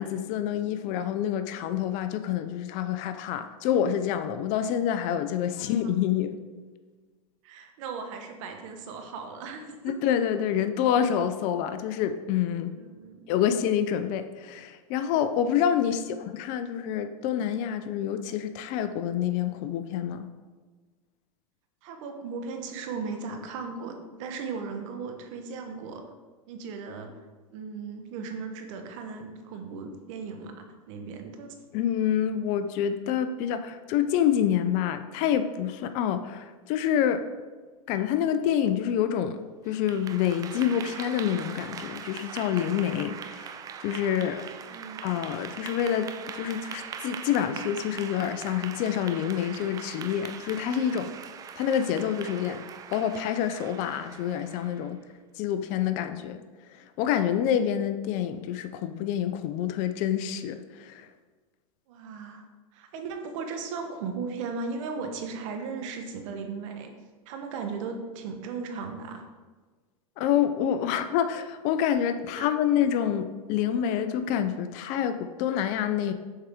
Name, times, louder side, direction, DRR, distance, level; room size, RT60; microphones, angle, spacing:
voice 1, 0.0-6.4 9.8-12.7 13.3-20.3 31.7-37.3 37.9-44.5 45.0-51.1 51.6-52.6 52.9-55.0 55.4-56.4 56.7-61.1 70.2-76.1, left 9 dB, 40° left, 10 dB, 0.5 m, -27 dB
voice 2, 7.4-9.9 12.7-13.2 15.8-16.2 21.8-23.9 24.2-26.1 26.5-27.1 27.5-31.5 44.6-45.1 58.1-58.3 61.9-62.5 62.7-66.9 67.3-69.2 72.4-72.5, right 5 dB, 55° right, 5 dB, 1.0 m, -37 dB
Clapping / Applause, 39.7-54.9, right 7 dB, 20° right, 0.3 m, -41 dB
6.4 x 4.7 x 3.5 m, 1.4 s
hypercardioid pair, 125°, 19 cm